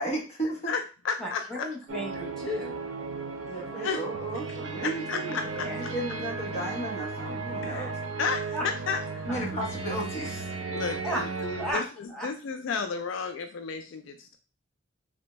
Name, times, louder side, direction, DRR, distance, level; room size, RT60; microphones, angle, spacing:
voice 1, 0.0-0.7 3.5-7.9 9.3-10.5, right 1 dB, 35° left, -2 dB, 0.9 m, -34 dB
voice 2, 0.7-1.7 3.8-4.0 4.8-5.9 7.6-7.9 8.2-9.4 10.7-14.4, left 5 dB, 70° left, 6 dB, 0.3 m, -33 dB
voice 3, 1.2-2.8 5.4-5.8 8.5-8.7 9.3-9.4 10.8-11.3 11.6-11.8 12.1-12.3, equal, 5° left, -2 dB, 0.7 m, -34 dB
sound 1, 1.9-11.7, right 4 dB, 75° right, 0.5 m, -35 dB
3.3 x 2.1 x 3.0 m, 0.34 s
head